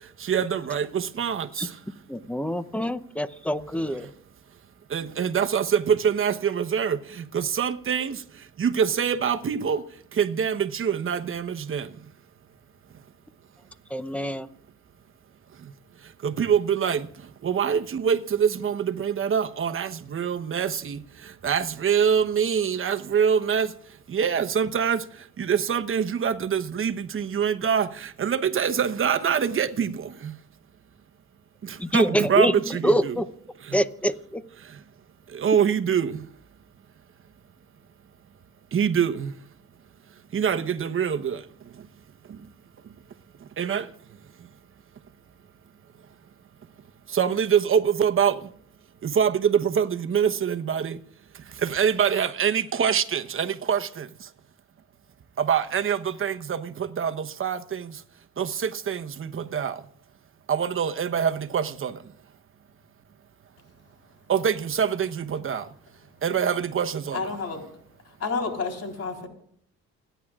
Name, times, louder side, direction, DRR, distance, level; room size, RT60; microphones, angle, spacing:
voice 1, 0.2-1.8 4.9-8.2 8.6-9.8 10.1-11.9 16.2-17.1 17.4-23.7 24.1-25.0 25.4-30.3 31.6-33.2 33.6-33.8 35.3-36.2 38.7-39.3 40.3-41.4 43.6-43.9 47.1-48.4 49.0-51.0 51.6-54.1 55.4-58.0 58.4-59.8 60.5-62.0 64.3-65.7 66.2-67.3, right 7 dB, 45° right, 1.0 m, -25 dB
voice 2, 2.1-4.1 13.9-14.5 31.8-33.3 33.7-34.4, equal, 5° left, 0.7 m, -25 dB
voice 3, 67.1-67.6 68.2-69.3, left 4 dB, 55° left, 4.0 m, -30 dB
29.0 x 10.0 x 2.4 m
cardioid pair, 90°, 30 cm